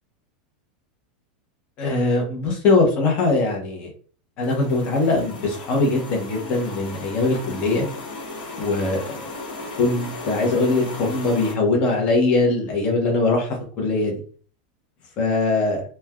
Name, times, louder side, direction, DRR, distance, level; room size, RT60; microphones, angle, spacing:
voice 1, 1.8-3.9 4.4-7.8 8.6-9.3 9.8-14.2 15.2-15.8, left 3 dB, 25° left, 0 dB, 0.7 m, -21 dB
sound 1, 4.4-11.5, left 2 dB, 70° left, 1.1 m, -36 dB
3.1 x 2.2 x 2.2 m, 0.42 s
supercardioid pair, 180°, 5 cm